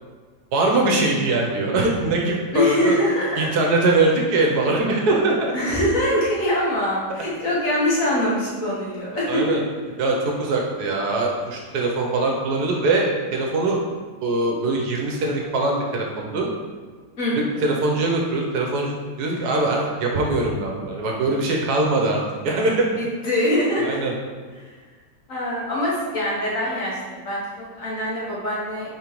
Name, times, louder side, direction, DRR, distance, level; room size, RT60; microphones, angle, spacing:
voice 1, 0.5-3.0 3.4-5.5 9.3-9.6 10.0-13.8 14.2-16.5 17.6-22.8 23.8-24.2, right 2 dB, 70° right, 0 dB, 1.1 m, -22 dB
voice 2, 2.5-3.5 5.5-9.5 17.2-17.5 23.0-24.0 25.3-27.0 27.2-28.9, left 1 dB, 55° left, -6 dB, 1.4 m, -23 dB
5.0 x 3.6 x 3.0 m, 1.5 s
omnidirectional pair, 1.9 m